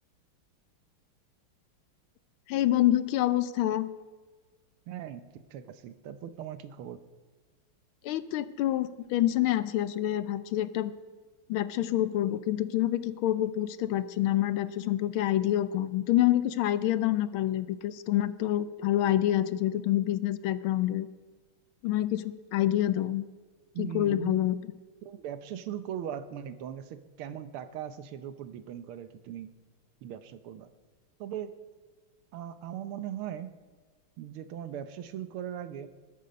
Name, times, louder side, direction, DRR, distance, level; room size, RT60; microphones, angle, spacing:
voice 1, 2.5-3.9 8.0-10.9 11.5-21.1 21.8-23.2 23.8-24.5, left 13 dB, 75° left, 14 dB, 1.4 m, -27 dB
voice 2, 4.9-7.0 23.7-24.4 25.0-29.5 30.0-30.7 31.2-31.5 32.3-33.5 34.2-35.9, right 10 dB, 80° right, 11 dB, 1.7 m, -39 dB
19.5 x 9.5 x 5.2 m, 1.4 s
omnidirectional pair, 2.4 m